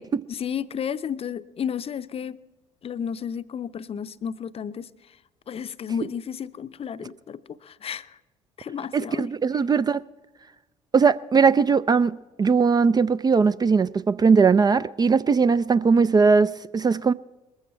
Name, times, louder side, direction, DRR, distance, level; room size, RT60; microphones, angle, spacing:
voice 1, 0.3-2.4 2.8-5.2 5.5-8.2 8.6-9.3, left 7 dB, 40° left, 0.6 m, -32 dB
voice 2, 8.9-10.0 10.9-17.1, right 5 dB, 25° right, 0.4 m, -20 dB
21.0 x 14.5 x 4.5 m
hypercardioid pair, 55°, 16 cm